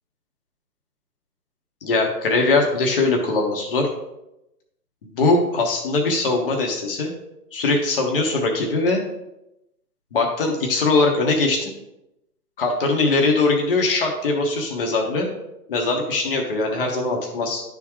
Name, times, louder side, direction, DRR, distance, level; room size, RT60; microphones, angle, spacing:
voice 1, 1.8-3.9 5.1-7.1 7.5-9.0 10.1-11.7 12.6-15.3 15.7-17.6, left 3 dB, 35° left, 1 dB, 1.2 m, -21 dB
11.0 x 3.7 x 3.0 m, 0.88 s
hypercardioid pair, 155°, 49 cm